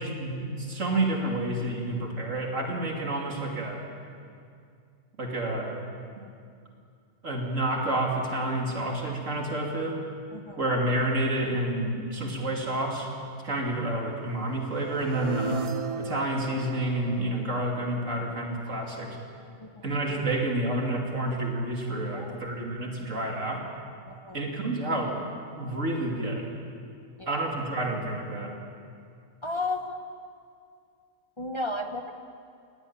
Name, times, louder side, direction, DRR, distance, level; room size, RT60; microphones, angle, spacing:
voice 1, 0.0-3.8 5.2-5.8 7.2-10.0 10.6-13.1 13.4-15.7 16.0-19.2 19.8-23.7 24.3-25.2 25.6-26.5 27.3-28.5, right 1 dB, 90° right, 0 dB, 3.1 m, -29 dB
voice 2, 10.3-10.7 19.6-19.9 22.0-22.5 24.1-24.5 27.2-27.4 29.4-30.0 31.4-32.1, left 2 dB, 25° left, 5 dB, 1.0 m, -34 dB
sound 1, 14.5-18.5, right 5 dB, 45° right, 0.4 m, -37 dB
19.5 x 17.5 x 8.8 m, 2.4 s
omnidirectional pair, 1.3 m